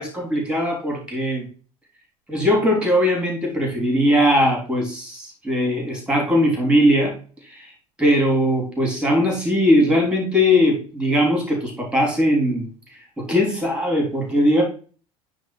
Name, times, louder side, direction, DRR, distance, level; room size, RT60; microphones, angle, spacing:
voice 1, 0.0-1.5 2.3-7.1 7.5-7.7 8.0-12.7 13.2-14.6, equal, 5° right, -1 dB, 3.5 m, -20 dB
9.0 x 3.5 x 4.7 m, 0.39 s
figure-of-eight pair, 70°, 18 cm